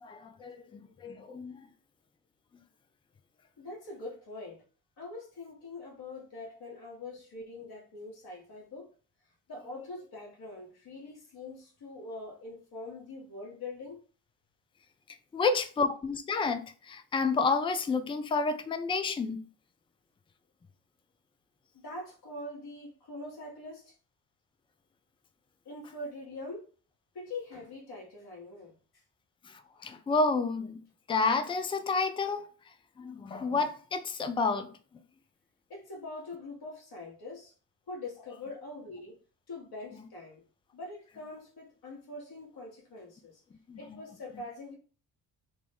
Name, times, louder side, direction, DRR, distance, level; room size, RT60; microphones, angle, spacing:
voice 1, 0.0-1.7 15.3-19.4 29.4-30.8 31.1-32.5 33.0-34.7 43.7-44.0, left 4 dB, 15° left, 0.3 m, -30 dB
voice 2, 3.6-4.6 5.0-8.9 9.5-14.0 21.8-23.9 25.6-26.7 27.1-28.8 35.7-37.5 37.9-39.1 39.5-40.4 40.7-43.4 43.8-44.8, left 2 dB, 55° left, 1.6 m, -43 dB
3.0 x 2.0 x 3.5 m
hypercardioid pair, 45°, 46 cm